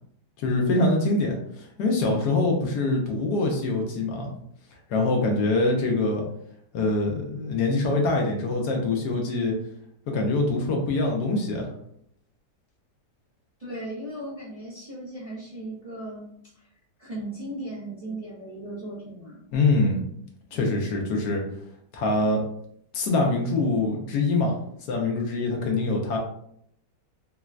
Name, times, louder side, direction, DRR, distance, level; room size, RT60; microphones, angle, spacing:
voice 1, 0.4-1.4 1.8-4.3 4.9-6.2 6.7-9.5 10.1-11.7 19.5-20.0 20.5-21.4 21.9-22.4 22.9-24.5 24.9-26.2, left 2 dB, 75° left, 1 dB, 1.2 m, -24 dB
voice 2, 13.6-16.3 16.5-16.7 17.0-19.5, right 1 dB, 40° right, -8 dB, 0.5 m, -37 dB
4.0 x 2.1 x 2.4 m, 0.70 s
omnidirectional pair, 1.9 m